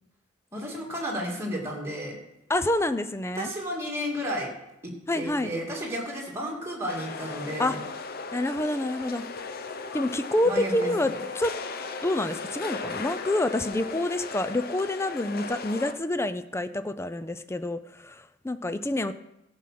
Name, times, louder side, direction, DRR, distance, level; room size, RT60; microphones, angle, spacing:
voice 1, 0.5-2.2 3.3-4.5 4.8-7.8 10.4-11.1, equal, 15° right, -3 dB, 2.6 m, -32 dB
voice 2, 2.5-3.5 5.1-5.5 7.6-7.8 8.3-9.3 9.9-11.5 12.0-19.1, left 1 dB, 15° left, 11 dB, 0.4 m, -27 dB
sound 1, 6.9-15.9, left 4 dB, 50° left, 0.7 m, -37 dB
14.0 x 6.3 x 5.9 m, 0.88 s
head